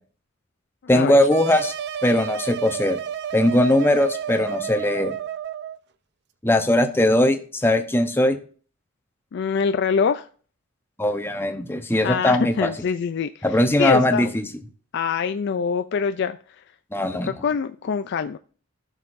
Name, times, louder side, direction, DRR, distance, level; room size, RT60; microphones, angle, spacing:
voice 1, 0.9-1.7 2.0-3.0 3.3-5.1 6.4-8.4 11.0-12.7 13.4-14.5 16.9-17.3, left 1 dB, 10° left, 7 dB, 0.8 m, -20 dB
sound 1, 1.3-5.8, right 9 dB, 55° right, 0.5 m, -31 dB
voice 2, 9.3-10.3 12.0-14.3 14.9-16.4 17.2-18.4, left 6 dB, 55° left, 10 dB, 0.4 m, -24 dB
15.0 x 6.5 x 2.6 m, 0.42 s
head